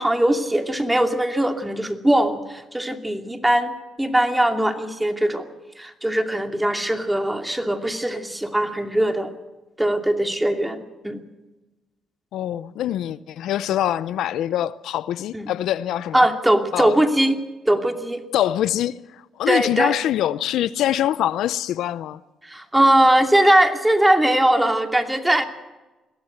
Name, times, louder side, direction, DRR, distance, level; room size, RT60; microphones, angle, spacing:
voice 1, 0.0-3.7 4.0-5.5 5.8-9.3 9.8-11.2 15.3-15.5 16.1-18.2 19.5-19.9 22.4-25.4, right 1 dB, 10° right, 2.6 m, -20 dB
voice 2, 12.3-16.2 16.7-17.0 18.3-19.0 19.4-22.2, left 12 dB, 80° left, 0.6 m, -24 dB
22.0 x 16.5 x 8.0 m
cardioid pair, 75°, 0 cm